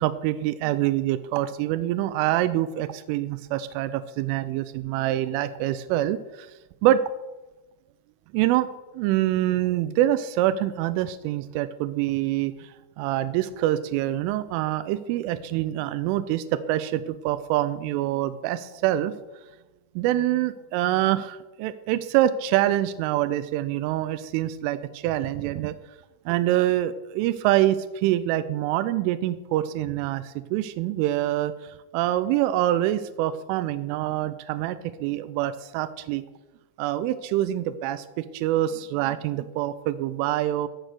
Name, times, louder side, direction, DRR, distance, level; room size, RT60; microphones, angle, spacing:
voice 1, 0.0-6.5 6.8-7.0 8.3-8.7 8.9-19.2 20.0-25.7 26.3-36.2 36.8-40.7, right 13 dB, 85° right, 13 dB, 3.1 m, -25 dB
15.5 x 6.3 x 6.6 m, 1.1 s
omnidirectional pair, 5.7 m